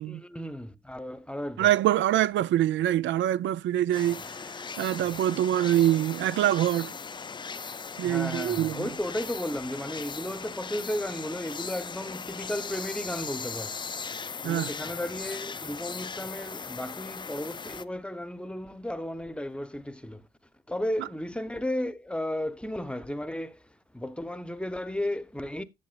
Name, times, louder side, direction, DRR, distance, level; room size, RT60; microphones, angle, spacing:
voice 1, 0.0-1.7 5.0-5.1 8.0-13.7 14.4-20.3 20.7-23.6 23.9-25.6, left 1 dB, 5° left, 0.9 m, -34 dB
voice 2, 1.6-4.2 4.8-6.9 8.0-8.9 14.4-14.7, right 12 dB, 70° right, 0.5 m, -24 dB
sound 1, 3.9-17.8, left 5 dB, 25° left, 0.5 m, -38 dB
11.0 x 7.8 x 2.4 m
cardioid pair, 90°, 20 cm